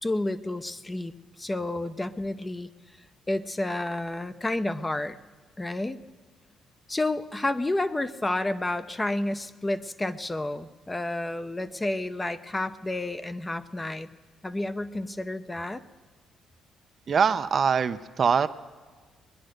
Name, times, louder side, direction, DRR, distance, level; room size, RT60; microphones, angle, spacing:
voice 1, 0.0-2.7 3.3-5.2 5.6-6.0 6.9-14.1 14.4-15.8, left 2 dB, 15° left, 12 dB, 0.7 m, -30 dB
voice 2, 17.1-18.5, right 6 dB, 50° right, 11 dB, 0.5 m, -23 dB
20.5 x 10.5 x 6.5 m, 1.5 s
cardioid pair, 90°, 0 cm